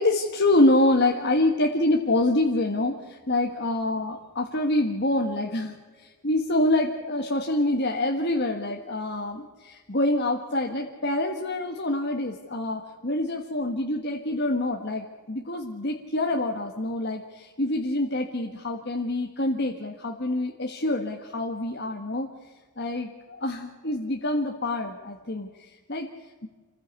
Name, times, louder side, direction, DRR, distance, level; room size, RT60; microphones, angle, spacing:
voice 1, 0.0-22.3 22.8-26.1, left 1 dB, 50° left, 2 dB, 1.5 m, -26 dB
27.0 x 15.0 x 8.3 m, 1.4 s
head